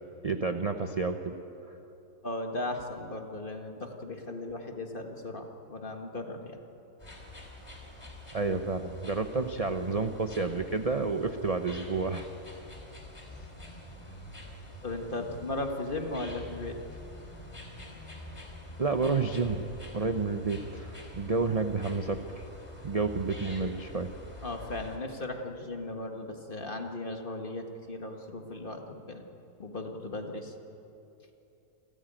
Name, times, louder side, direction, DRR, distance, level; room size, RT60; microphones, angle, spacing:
voice 1, 0.2-1.7 8.3-12.3 18.8-19.6 19.9-22.5 22.8-24.1, right 4 dB, 35° right, 7 dB, 0.6 m, -30 dB
voice 2, 2.2-6.6 14.8-16.8 24.4-29.2 29.6-30.5, left 2 dB, 35° left, 3 dB, 1.8 m, -37 dB
sound 1, 7.0-25.0, left 1 dB, 20° left, 3.0 m, -46 dB
29.0 x 14.0 x 9.0 m, 2.9 s
omnidirectional pair, 1.7 m